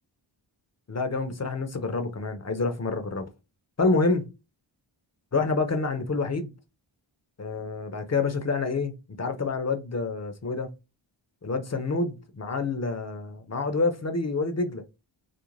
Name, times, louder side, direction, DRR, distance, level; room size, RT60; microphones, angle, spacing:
voice 1, 0.9-3.3 3.8-4.2 5.3-6.5 7.4-8.9 9.2-10.7 11.4-14.8, left 3 dB, 35° left, 0.6 m, -27 dB
2.5 x 2.0 x 3.0 m
wide cardioid pair, 50°, 49 cm